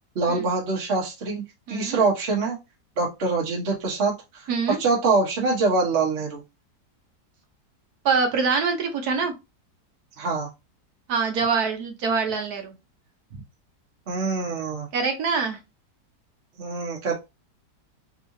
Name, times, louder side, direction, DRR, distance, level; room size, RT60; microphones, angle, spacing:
voice 1, 0.1-1.4 1.7-2.6 3.0-4.1 4.8-6.4 10.2-10.5 14.1-14.9 16.6-17.1, right 3 dB, 45° right, -2 dB, 1.2 m, -24 dB
voice 2, 1.7-2.0 4.5-4.8 8.0-9.3 11.1-12.8 14.9-15.6, right 5 dB, 65° right, 4 dB, 1.3 m, -24 dB
3.7 x 3.3 x 2.6 m, 0.24 s
omnidirectional pair, 1.8 m